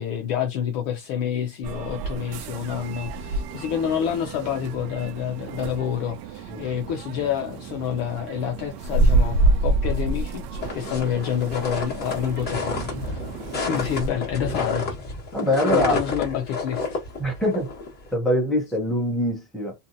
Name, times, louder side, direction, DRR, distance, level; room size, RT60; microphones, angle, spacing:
voice 1, 0.0-13.2 13.6-15.0 15.5-17.0, left 9 dB, 50° left, 0.6 m, -28 dB
sound 1, 1.6-14.1, right 2 dB, 80° right, 0.7 m, -28 dB
sound 2, 10.6-18.1, left 3 dB, 20° left, 1.2 m, -30 dB
voice 2, 15.3-16.0 17.2-17.7 18.1-19.7, left 1 dB, ahead, 0.4 m, -23 dB
2.7 x 2.3 x 2.6 m
cardioid pair, 160°, 48 cm